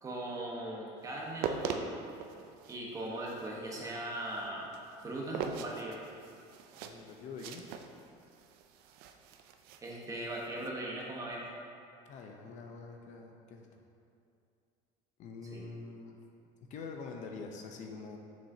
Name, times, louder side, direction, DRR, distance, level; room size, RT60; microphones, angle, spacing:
voice 1, 0.0-1.9 2.7-4.6 5.0-6.0 9.8-11.5 15.5-15.6, right 1 dB, 20° right, -3 dB, 1.1 m, -39 dB
sound 1, 1.1-10.7, right 7 dB, 65° right, 0.5 m, -42 dB
voice 2, 6.8-7.6 12.1-13.8 15.2-16.2 16.7-18.2, left 4 dB, 50° left, 2 dB, 0.6 m, -45 dB
7.1 x 6.1 x 2.7 m, 2.5 s
cardioid pair, 135°, 16 cm